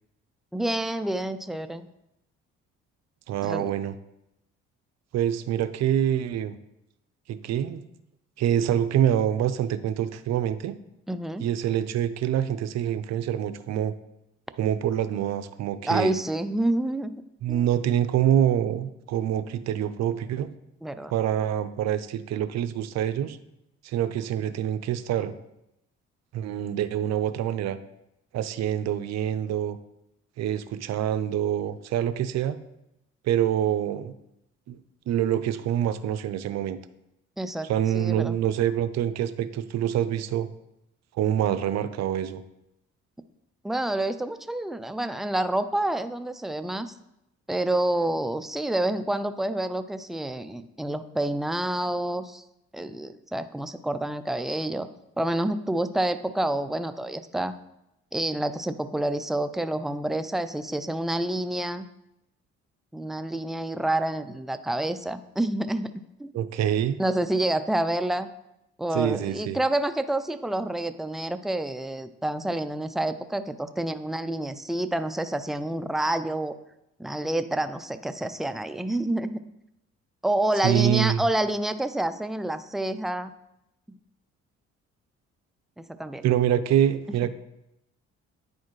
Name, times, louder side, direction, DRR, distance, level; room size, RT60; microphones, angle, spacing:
voice 1, 0.5-1.9 3.4-3.7 11.1-11.5 15.8-17.2 17.5-17.7 20.8-21.1 37.4-37.7 37.9-38.4 43.6-46.9 47.5-52.4 52.7-54.9 55.2-57.6 58.1-61.9 62.9-65.9 66.2-66.3 67.0-68.3 68.8-76.5 77.0-79.4 80.2-83.3 83.9-84.0 85.8-86.2 87.1-87.2, right 1 dB, ahead, 10 dB, 0.3 m, -28 dB
voice 2, 3.3-3.9 5.1-6.5 7.3-7.8 8.4-10.7 11.4-13.9 14.6-16.1 17.4-20.5 21.1-23.4 23.8-25.3 26.3-27.8 28.3-29.8 30.4-32.6 33.2-34.1 34.7-34.8 35.1-36.8 37.6-40.5 41.2-42.4 66.3-67.0 68.9-69.6 80.6-81.2 86.2-87.3, right 10 dB, 65° right, 12 dB, 0.5 m, -26 dB
9.3 x 4.2 x 3.1 m, 0.85 s
cardioid pair, 80°, 29 cm